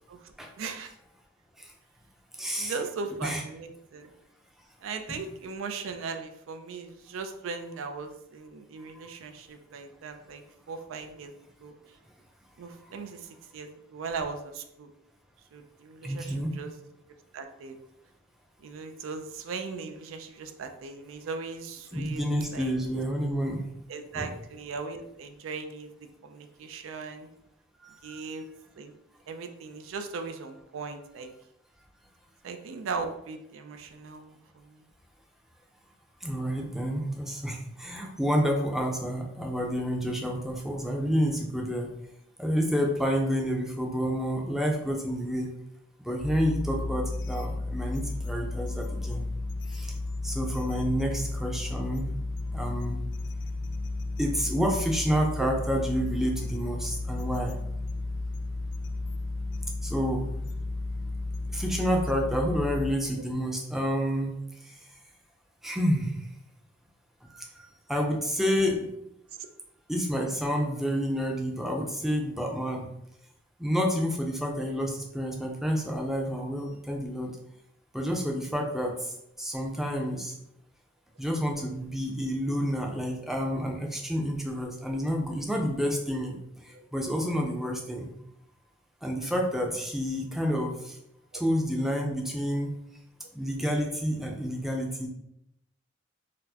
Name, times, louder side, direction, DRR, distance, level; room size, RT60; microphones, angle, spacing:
voice 1, 0.1-0.9 2.6-4.1 4.8-11.3 11.6-11.7 12.6-14.9 15.5-16.7 17.3-17.8 18.6-22.2 22.5-22.7 23.9-25.9 26.2-27.3 28.0-28.4 28.8-28.9 29.3-31.3 32.4-34.8 60.0-60.2 61.9-62.0 86.7-86.8 91.3-91.4, right 4 dB, 85° right, 7 dB, 0.4 m, -38 dB
voice 2, 2.4-2.7 3.2-3.4 5.1-5.2 12.9-13.0 16.0-16.6 21.9-23.6 24.1-24.3 27.8-28.2 36.2-41.9 42.4-45.5 46.0-49.2 49.7-49.9 50.2-52.1 52.5-53.1 54.2-57.6 59.8-60.3 61.5-64.3 64.6-64.8 65.6-66.1 67.3-67.5 67.9-68.9 69.9-72.9 73.6-77.3 77.9-80.3 81.2-86.4 86.6-88.1 89.0-91.0 91.3-92.8 93.3-95.1, equal, ahead, 0 dB, 0.4 m, -29 dB
sound 1, 46.2-62.9, left 2 dB, 65° left, 0.3 m, -33 dB
4.2 x 2.0 x 2.7 m, 0.80 s
head